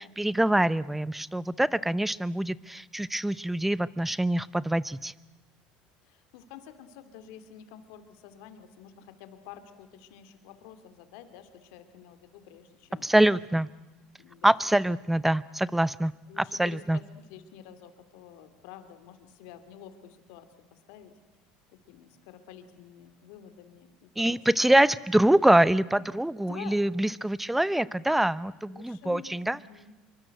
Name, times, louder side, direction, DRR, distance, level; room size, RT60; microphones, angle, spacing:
voice 1, 0.0-5.1 13.0-13.7 14.4-16.1 16.4-17.0 24.2-29.6, right 1 dB, 5° right, 19 dB, 0.8 m, -25 dB
voice 2, 6.0-13.4 14.2-14.7 16.3-17.0 17.3-21.1 21.7-25.0 26.0-26.1 26.4-26.8 28.7-30.0, left 9 dB, 80° left, 10 dB, 2.9 m, -49 dB
26.0 x 24.0 x 8.0 m, 1.2 s
supercardioid pair, 105°, 3 cm